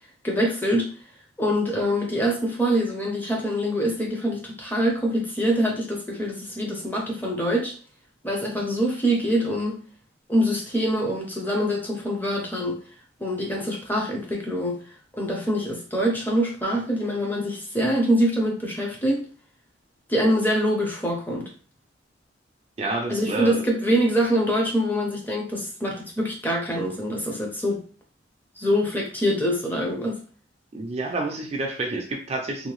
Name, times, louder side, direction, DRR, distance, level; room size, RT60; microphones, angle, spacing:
voice 1, 0.2-0.9 1.4-7.7 8.2-9.8 10.3-12.8 13.2-14.8 15.1-19.2 20.1-21.5 23.1-27.8 28.6-30.2, equal, 10° left, 0 dB, 0.6 m, -24 dB
voice 2, 22.8-23.6 30.7-32.7, right 2 dB, 35° right, 2 dB, 0.4 m, -29 dB
2.7 x 2.2 x 3.0 m, 0.40 s
head